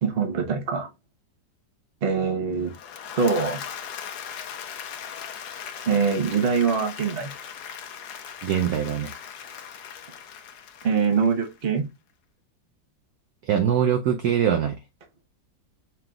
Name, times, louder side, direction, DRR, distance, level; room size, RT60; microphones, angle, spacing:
voice 1, 0.0-0.9 2.0-2.7 3.2-3.6 5.9-7.3 10.8-11.9, right 5 dB, 40° right, 1.0 m, -23 dB
Applause / Crowd, 2.6-11.7, left 8 dB, 65° left, 1.2 m, -39 dB
voice 2, 8.4-9.1 13.4-14.8, right 9 dB, 65° right, 1.0 m, -23 dB
5.8 x 3.8 x 2.3 m
omnidirectional pair, 2.0 m